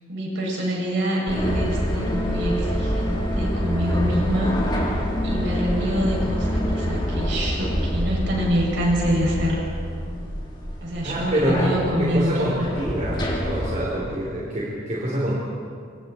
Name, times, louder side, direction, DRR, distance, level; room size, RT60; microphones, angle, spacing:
voice 1, 0.1-4.6 5.2-9.6 10.8-12.8, equal, 55° right, -3 dB, 7.8 m, -25 dB
sound 1, 1.3-13.7, equal, 20° left, 3.6 m, -26 dB
voice 2, 11.0-11.7 12.0-15.4, right 1 dB, 35° right, -5 dB, 4.0 m, -26 dB
27.0 x 26.0 x 4.6 m, 2.3 s
head